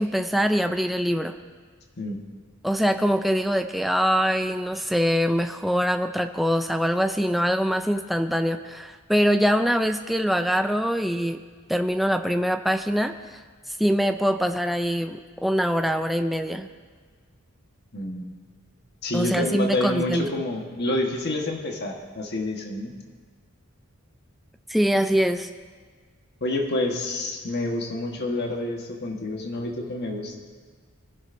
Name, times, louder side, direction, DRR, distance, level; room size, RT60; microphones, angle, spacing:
voice 1, 0.0-1.4 2.6-11.4 11.7-13.4 13.8-16.7 19.1-20.4 24.7-25.5, equal, ahead, 7 dB, 0.4 m, -23 dB
voice 2, 17.9-18.4 19.0-22.9 26.4-30.4, left 1 dB, 50° left, 1 dB, 1.4 m, -28 dB
21.5 x 11.0 x 2.7 m, 1.5 s
head